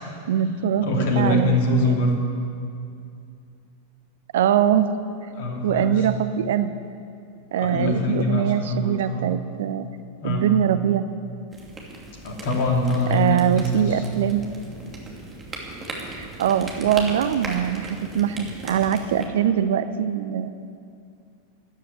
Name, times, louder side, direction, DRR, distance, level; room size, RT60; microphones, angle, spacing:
voice 1, 0.3-1.5 1.9-2.0 4.3-5.0 5.6-6.7 7.5-9.9 10.2-11.1 13.1-14.4 16.2-20.5, right 9 dB, 60° right, 12 dB, 0.7 m, -22 dB
voice 2, 0.8-2.3 5.3-6.1 7.6-9.3 10.2-10.5 12.2-14.0, left 2 dB, 50° left, 1 dB, 2.8 m, -24 dB
sound 1, 11.5-19.3, right 2 dB, 20° right, 2.6 m, -38 dB
13.5 x 9.5 x 9.7 m, 2.4 s
figure-of-eight pair, 90°, 0 cm